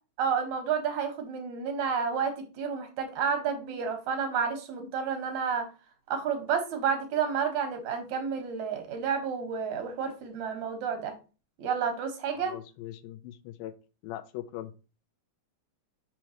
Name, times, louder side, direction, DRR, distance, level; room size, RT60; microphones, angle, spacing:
voice 1, 0.2-5.7 6.1-11.1 11.6-12.5, right 6 dB, 60° right, 5 dB, 2.5 m, -30 dB
voice 2, 12.3-13.7 14.0-14.7, left 13 dB, 90° left, 10 dB, 2.4 m, -40 dB
6.2 x 6.1 x 2.9 m, 0.32 s
omnidirectional pair, 4.1 m